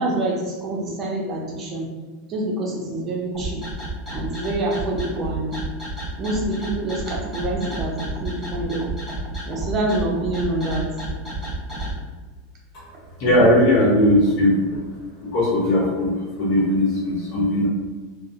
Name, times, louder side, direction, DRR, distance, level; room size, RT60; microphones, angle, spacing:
voice 1, 0.0-1.9 2.3-3.6 4.1-5.6 6.2-8.8 9.5-10.9, right 2 dB, 30° right, -2 dB, 0.6 m, -26 dB
sound 1, 3.3-11.9, right 2 dB, 5° left, 1.1 m, -31 dB
voice 2, 13.2-14.8 15.2-17.7, left 1 dB, 55° left, -4 dB, 0.9 m, -19 dB
2.6 x 2.0 x 2.6 m, 1.3 s
supercardioid pair, 140°, 0 cm